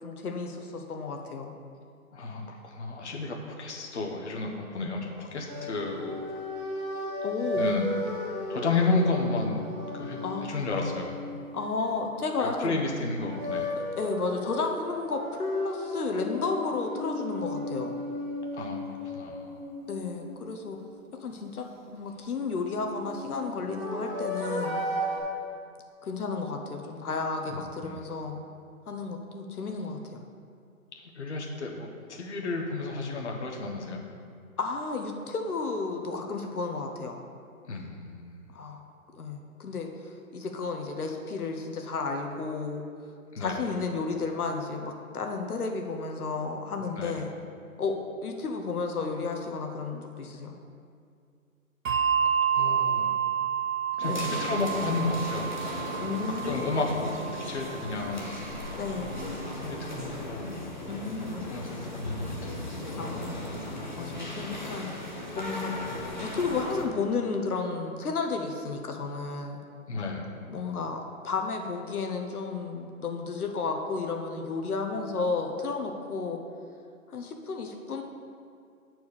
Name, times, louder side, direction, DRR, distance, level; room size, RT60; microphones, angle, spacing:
voice 1, 0.0-1.5 7.2-7.7 10.2-10.7 11.5-12.8 13.8-18.0 19.9-20.8 21.2-24.8 26.0-28.4 28.9-30.2 34.6-37.2 38.5-38.8 39.1-42.8 43.4-47.3 47.8-50.5 52.8-52.9 54.1-54.3 56.0-56.6 58.8-59.2 60.8-61.5 63.0-63.4 64.0-64.9 65.3-65.7 66.2-69.6 70.5-76.4 77.1-78.0, left 4 dB, 80° left, 3 dB, 1.0 m, -32 dB
voice 2, 2.1-6.2 7.6-7.9 8.5-9.7 9.9-11.1 12.4-13.7 18.5-19.6 27.4-28.0 31.2-34.0 37.7-38.2 43.3-43.6 47.0-47.2 52.2-52.3 52.5-53.1 54.0-55.5 56.4-57.1 57.4-58.3 59.6-60.6 61.5-62.6 69.9-70.3, left 3 dB, 50° left, 0 dB, 1.0 m, -32 dB
sound 1, 5.5-12.5 13.0-20.9 22.6-25.2, left 1 dB, 25° right, 2.1 m, -35 dB
Bell, 51.9-58.7, right 8 dB, 60° right, 0.8 m, -30 dB
sound 2, 54.0-66.9, left 1 dB, 35° left, 0.6 m, -37 dB
7.1 x 4.6 x 6.5 m, 2.3 s
hypercardioid pair, 180°, 44 cm